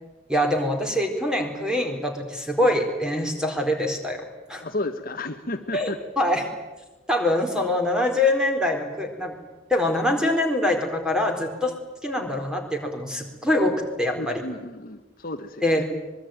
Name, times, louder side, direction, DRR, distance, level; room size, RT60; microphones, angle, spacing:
voice 1, 0.3-4.6 5.7-6.5 7.1-9.3 9.7-11.7 12.0-14.4 15.6-15.8, left 1 dB, 5° right, 3 dB, 4.3 m, -24 dB
voice 2, 4.6-6.0 14.1-15.8, left 2 dB, 45° left, 6 dB, 1.4 m, -32 dB
25.0 x 22.5 x 9.3 m, 1.1 s
head